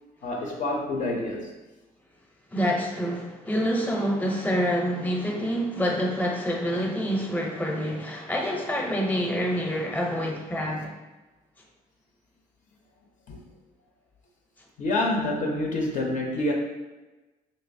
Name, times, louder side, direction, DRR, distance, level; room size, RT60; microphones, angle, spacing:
voice 1, 0.2-1.5 13.3-13.4 14.8-16.5, left 2 dB, 55° left, 0 dB, 0.5 m, -27 dB
voice 2, 2.5-10.9, equal, 10° left, 0 dB, 0.6 m, -27 dB
3.1 x 2.8 x 2.6 m, 1.1 s
cardioid pair, 85°, 16 cm